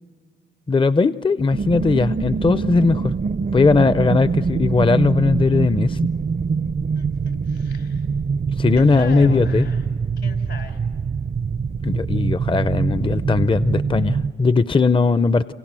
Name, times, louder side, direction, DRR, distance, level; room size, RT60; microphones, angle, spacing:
voice 1, 0.7-3.1 3.5-6.0 8.6-9.7 11.8-15.5, left 3 dB, 25° left, 14 dB, 0.6 m, -18 dB
sound 1, 1.5-14.3, right 5 dB, 40° right, 0.6 m, -24 dB
voice 2, 6.9-8.1 8.7-9.8 10.2-10.8, left 5 dB, 80° left, 6 dB, 4.1 m, -37 dB
29.0 x 26.5 x 7.5 m, 2.1 s
cardioid pair, 55°, 20 cm